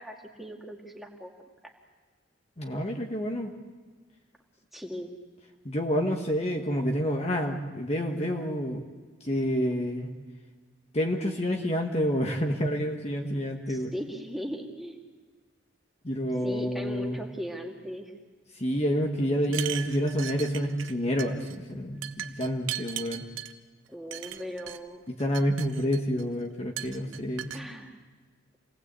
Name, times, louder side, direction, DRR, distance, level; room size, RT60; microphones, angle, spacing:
voice 1, 0.0-1.3 4.7-5.1 13.7-15.0 16.4-18.1 23.9-25.0 27.5-27.9, equal, ahead, 0 dB, 2.4 m, -38 dB
voice 2, 2.6-3.5 5.6-8.8 9.2-10.1 10.9-13.9 16.0-17.2 18.5-23.3 25.1-27.5, equal, 30° left, 2 dB, 1.6 m, -28 dB
sound 1, 19.4-20.9 21.2-21.6 22.0-23.5 24.1-24.8 25.2-26.2 26.8-27.6, right 11 dB, 85° right, 1.2 m, -37 dB
28.5 x 19.5 x 8.4 m, 1.5 s
head